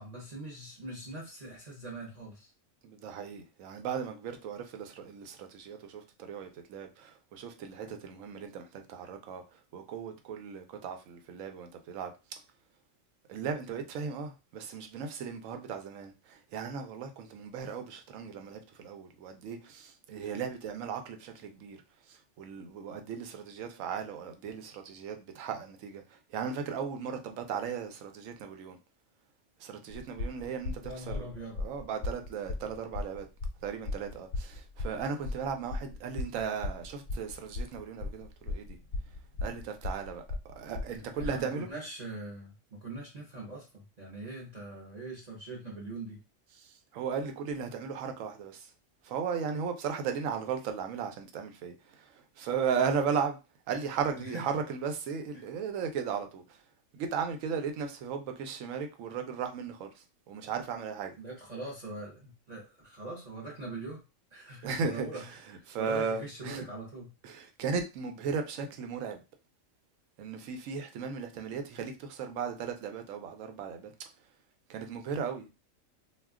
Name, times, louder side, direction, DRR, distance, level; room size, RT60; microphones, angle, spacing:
voice 1, 0.0-2.5 30.8-31.6 40.9-46.2 54.1-54.4 55.3-55.4 61.2-64.0 64.3-65.2 65.5-67.1, right 2 dB, 40° right, 0.7 m, -42 dB
voice 2, 2.8-9.4 9.7-12.1 13.3-21.8 22.4-26.0 26.3-28.8 29.6-31.3 31.6-33.3 33.6-38.8 39.4-41.7 46.9-48.7 49.0-51.7 52.4-53.4 53.7-56.4 56.9-59.9 60.3-61.1 64.6-65.3 65.7-66.6 67.2-69.2 70.2-73.9 74.7-75.5, right 6 dB, 80° right, 1.0 m, -36 dB
sound 1, 29.9-41.4, left 2 dB, 65° left, 0.7 m, -37 dB
2.4 x 2.2 x 3.5 m
omnidirectional pair, 1.4 m